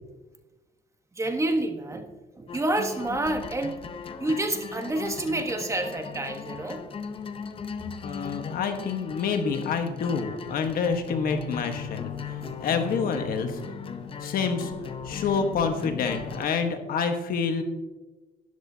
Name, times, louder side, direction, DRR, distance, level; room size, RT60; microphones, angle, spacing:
voice 1, 1.1-2.1 2.4-3.8 4.2-6.8 12.4-12.6, right 2 dB, 15° right, 5 dB, 1.2 m, -28 dB
sound 1, 2.5-16.5, left 6 dB, 35° left, 0.7 m, -38 dB
voice 2, 8.0-12.1 12.6-13.6 14.2-14.7 15.0-17.6, left 5 dB, 60° left, 6 dB, 1.3 m, -27 dB
13.0 x 10.5 x 2.8 m, 1.2 s
cardioid pair, 110°, 17 cm